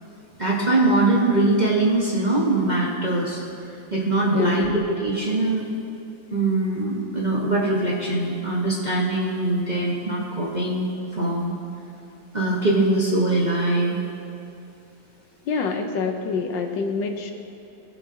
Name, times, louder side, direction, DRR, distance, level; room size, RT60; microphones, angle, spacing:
voice 1, 0.4-3.4 3.7-5.6 6.3-11.5 12.3-14.0, right 2 dB, 25° right, -6 dB, 1.1 m, -22 dB
voice 2, 4.3-4.8 15.5-17.3, left 5 dB, 75° left, 4 dB, 1.4 m, -26 dB
21.0 x 7.0 x 2.8 m, 2.7 s
omnidirectional pair, 2.1 m